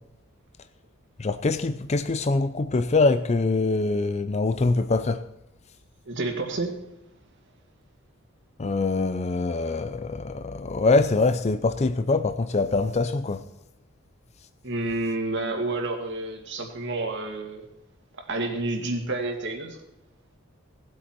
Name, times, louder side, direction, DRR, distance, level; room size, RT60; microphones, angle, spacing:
voice 1, 1.2-5.2 8.6-13.4, left 3 dB, 30° left, 0.5 m, -24 dB
voice 2, 6.1-6.8 14.6-17.7 18.2-19.8, right 2 dB, 60° right, 2.2 m, -29 dB
18.0 x 8.4 x 4.5 m
head